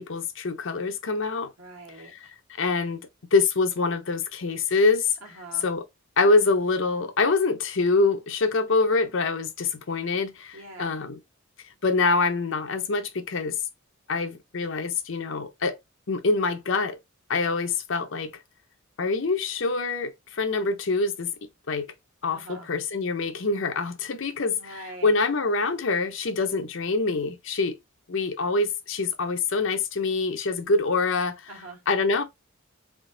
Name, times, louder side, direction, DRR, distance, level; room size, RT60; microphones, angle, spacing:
voice 1, 0.0-1.5 2.0-2.3 2.6-5.1 5.6-5.9 6.2-11.2 11.8-13.6 14.1-15.8 16.1-17.0 17.3-18.3 19.0-21.3 21.7-21.9 22.2-27.8 28.1-31.5 31.9-32.2, left 3 dB, 65° left, 0.7 m, -25 dB
voice 2, 1.6-2.3 5.2-5.6 10.5-11.0 22.3-22.7 24.6-25.1 31.5-31.8, right 2 dB, 90° right, 1.5 m, -43 dB
3.7 x 2.6 x 3.8 m
head